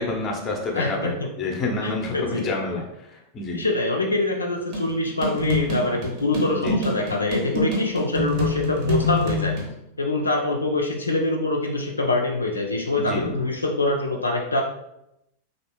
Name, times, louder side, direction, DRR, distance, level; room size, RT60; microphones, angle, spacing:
voice 1, 0.0-2.8 3.1-3.6 6.5-6.8 13.0-13.3, left 3 dB, 25° left, 0 dB, 0.7 m, -28 dB
voice 2, 0.7-1.3 1.8-2.5 3.5-9.6 10.0-14.6, left 2 dB, 80° left, 1 dB, 0.3 m, -24 dB
sound 1, 4.7-9.7, left 1 dB, 40° right, 1.0 m, -27 dB
3.3 x 2.5 x 2.9 m, 0.83 s
figure-of-eight pair, 90°, 0 cm